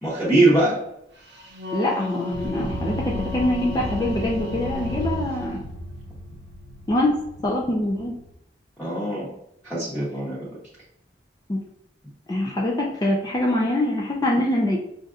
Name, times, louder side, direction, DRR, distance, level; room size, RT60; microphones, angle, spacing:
voice 1, 0.0-0.7 8.8-9.3 9.6-10.4, right 2 dB, ahead, -12 dB, 1.0 m, -21 dB
Wind instrument woodwind instrument, 1.3-5.5, left 3 dB, 70° right, 0.8 m, -36 dB
voice 2, 1.7-5.6 6.9-8.1 11.5-11.6 12.3-14.8, left 1 dB, 20° left, -2 dB, 0.4 m, -24 dB
sound 1, 2.3-8.3, equal, 55° left, 1.0 m, -34 dB
5.3 x 2.5 x 2.5 m, 0.78 s
head